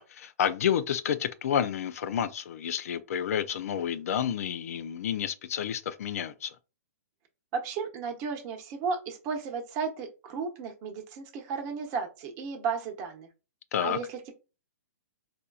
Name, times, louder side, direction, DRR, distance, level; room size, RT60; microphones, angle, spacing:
voice 1, 0.0-6.6 13.7-14.0, left 9 dB, 60° left, 0.4 m, -30 dB
voice 2, 7.5-13.3 13.8-14.3, right 5 dB, 35° right, 0.9 m, -34 dB
4.2 x 2.5 x 2.3 m
hypercardioid pair, 130°, 9 cm